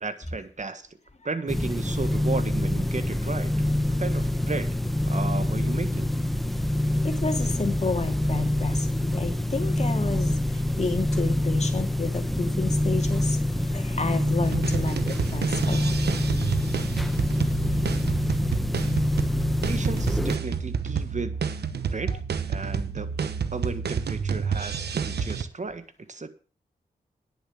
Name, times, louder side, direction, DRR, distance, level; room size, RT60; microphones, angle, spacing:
voice 1, 0.0-0.9 1.2-3.5 4.0-4.8 5.1-6.1 19.7-21.4 21.9-22.1 22.5-26.3, right 3 dB, 45° right, 12 dB, 1.6 m, -34 dB
sound 1, 1.5-20.4, left 1 dB, ahead, 1.2 m, -26 dB
voice 2, 7.0-16.2 22.1-22.2 22.8-22.9, left 3 dB, 40° left, 6 dB, 2.5 m, -31 dB
sound 2, 14.4-25.4, right 6 dB, 75° right, 1.0 m, -29 dB
10.0 x 7.2 x 7.3 m, 0.38 s
supercardioid pair, 40°, 17 cm